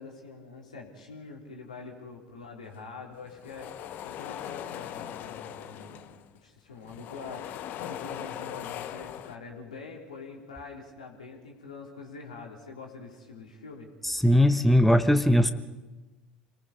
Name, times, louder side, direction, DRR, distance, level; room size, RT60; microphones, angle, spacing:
voice 1, 0.0-3.7 4.0-6.0 6.4-13.9, left 4 dB, 75° left, 0 dB, 3.4 m, -44 dB
sound 1, 3.2-6.4 6.7-9.4, left 11 dB, 50° left, 0.9 m, -40 dB
voice 2, 14.0-15.5, left 1 dB, 5° left, 9 dB, 1.0 m, -20 dB
28.0 x 20.0 x 5.4 m, 1.2 s
figure-of-eight pair, 65°, 4 cm